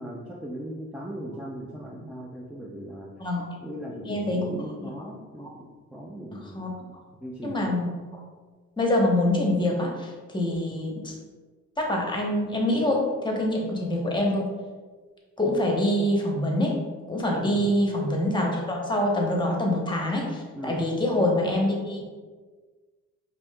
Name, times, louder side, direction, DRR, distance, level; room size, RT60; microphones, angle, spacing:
voice 1, 0.0-3.1 3.6-6.7 7.2-7.6 17.3-17.7 20.5-20.8, equal, 5° right, -3 dB, 0.4 m, -38 dB
voice 2, 4.0-4.6 5.4-5.5 6.5-6.7 7.4-8.1 8.8-11.2 11.8-14.5 15.4-16.7 17.1-22.0, left 1 dB, 15° left, -1 dB, 0.9 m, -25 dB
5.1 x 2.7 x 2.2 m, 1.4 s
cardioid pair, 90°, 30 cm